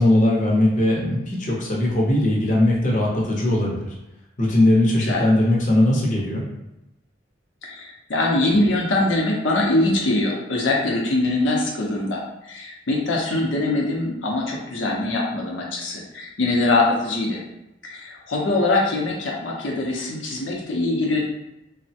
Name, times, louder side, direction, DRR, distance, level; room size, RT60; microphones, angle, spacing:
voice 1, 0.0-3.9 4.4-6.4, left 1 dB, 40° left, -3 dB, 0.6 m, -19 dB
voice 2, 7.6-17.4 17.8-21.2, left 2 dB, 85° left, -2 dB, 0.6 m, -23 dB
3.2 x 2.0 x 2.7 m, 0.90 s
head